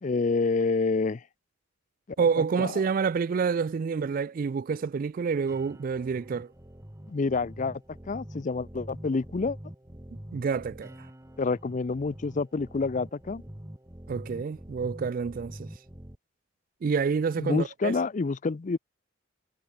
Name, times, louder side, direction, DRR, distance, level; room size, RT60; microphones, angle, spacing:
voice 1, 0.0-1.2 2.6-2.7 7.1-7.8 8.1-9.6 11.4-13.4 17.4-18.8, left 4 dB, 40° left, 0.4 m, -28 dB
voice 2, 2.2-6.5 10.3-10.9 14.1-15.7 16.8-18.0, right 5 dB, 45° right, 0.3 m, -28 dB
sound 1, 5.5-16.2, equal, 15° right, 1.3 m, -45 dB
head